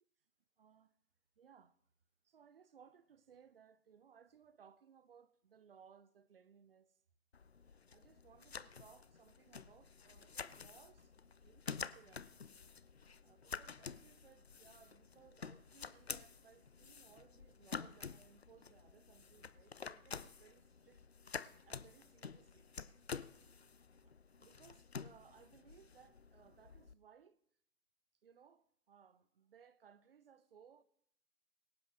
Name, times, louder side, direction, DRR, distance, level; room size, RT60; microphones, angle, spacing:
voice 1, 0.6-0.9 1.4-1.8 2.2-7.0 7.9-11.1 11.4-12.3 13.2-21.0 21.6-22.7 23.5-23.7 24.0-24.1 24.4-27.4 28.2-30.8, right 7 dB, 35° right, 0.7 m, -64 dB
sound 1, 7.3-26.9, left 5 dB, 45° left, 0.4 m, -50 dB
23.5 x 10.5 x 3.2 m
figure-of-eight pair, 135°, 49 cm